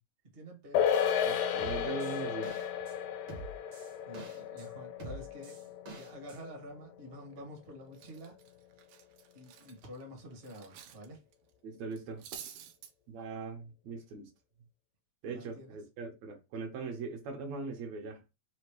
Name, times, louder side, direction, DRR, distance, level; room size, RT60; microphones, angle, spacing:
voice 1, 0.3-0.9 4.1-8.6 9.3-11.2 15.3-15.8, equal, 30° right, 1.0 m, -49 dB
sound 1, 0.7-7.4 7.7-7.8, left 8 dB, 80° left, 2.0 m, -33 dB
voice 2, 1.2-2.5 11.6-12.3 13.1-14.3 15.2-18.2, right 4 dB, 70° right, 2.3 m, -40 dB
sound 2, 1.6-2.9 3.3-4.7 5.0-6.4, right 1 dB, 55° right, 1.8 m, -46 dB
Cutlery silverware, 7.3-7.6 7.9-11.1 11.3-11.5 11.9-12.9, right 8 dB, 90° right, 2.2 m, -50 dB
5.0 x 2.8 x 3.1 m
omnidirectional pair, 3.4 m